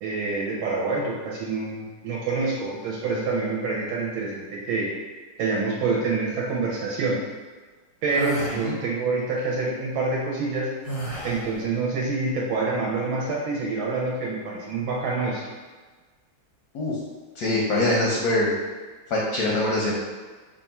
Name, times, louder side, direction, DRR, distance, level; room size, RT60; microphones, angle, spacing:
voice 1, 0.0-4.9 5.4-7.2 8.0-10.7 11.2-15.5, right 3 dB, 75° right, -4 dB, 1.4 m, -27 dB
sound 1, 8.1-8.6 10.9-11.5, right 1 dB, 45° left, 0.7 m, -30 dB
voice 2, 17.4-18.5 19.1-19.9, left 2 dB, 70° left, -4 dB, 1.0 m, -23 dB
3.5 x 2.4 x 4.1 m, 1.4 s
omnidirectional pair, 2.3 m